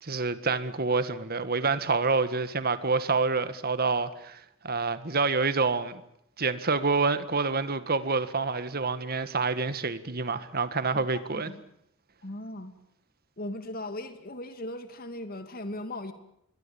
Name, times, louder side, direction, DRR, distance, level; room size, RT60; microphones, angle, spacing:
voice 1, 0.0-5.9 6.4-11.5, right 4 dB, 45° right, 1.7 m, -27 dB
voice 2, 10.9-11.6 12.2-12.7 13.4-16.1, left 1 dB, 45° left, 2.7 m, -38 dB
27.0 x 22.5 x 7.1 m
head